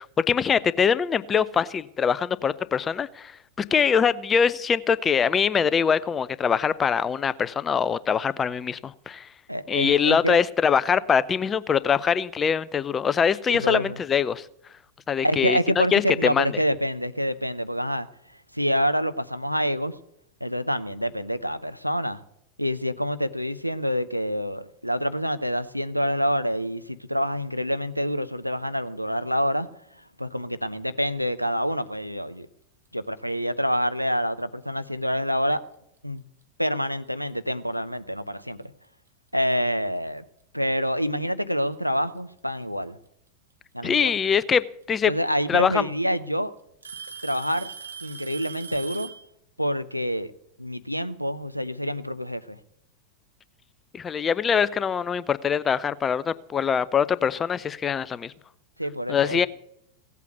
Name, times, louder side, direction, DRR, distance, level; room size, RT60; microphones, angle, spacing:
voice 1, 0.0-3.4 3.7-9.3 9.7-14.5 15.1-16.5 43.8-45.1 45.5-45.9 53.9-58.3 59.1-59.5, left 7 dB, 20° left, 18 dB, 0.6 m, -23 dB
voice 2, 9.5-10.4 13.5-14.0 15.2-18.1 18.5-19.9 20.4-22.2 22.6-29.7 30.2-32.5 32.9-35.6 36.0-36.2 36.6-38.7 39.3-40.2 40.5-43.0 43.7-44.2 45.1-46.5 47.2-47.7 48.0-49.1 49.6-50.3 50.6-52.6 58.8-59.5, equal, 90° right, 13 dB, 0.7 m, -27 dB
Alarm / Tick-tock, 35.3-35.5 36.4-36.5 37.3-37.4 39.1-39.2 40.4-40.5 41.7-42.2 43.9-44.0 45.3-45.4 45.7-46.2 46.8-49.3, right 6 dB, 75° right, 1.4 m, -40 dB
17.0 x 8.3 x 8.2 m, 0.75 s
figure-of-eight pair, 90°, 0 cm